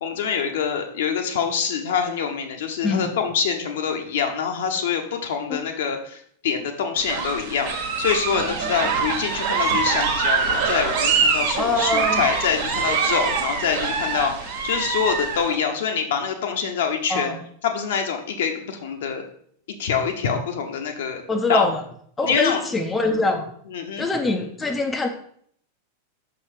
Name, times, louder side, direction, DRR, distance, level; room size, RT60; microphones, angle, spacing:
voice 1, 0.0-17.3 17.6-19.2 19.8-21.2 21.5-21.7 22.2-22.6 23.7-24.1, left 6 dB, 60° left, 4 dB, 0.9 m, -25 dB
voice 2, 2.8-3.1 5.5-5.6 11.6-12.2 17.1-17.4 21.3-21.8 22.2-23.5 24.0-25.1, left 2 dB, 15° left, 3 dB, 0.6 m, -23 dB
sound 1, 7.0-15.5, right 5 dB, 55° right, 1.4 m, -24 dB
6.1 x 3.9 x 4.9 m, 0.62 s
figure-of-eight pair, 90°, 0 cm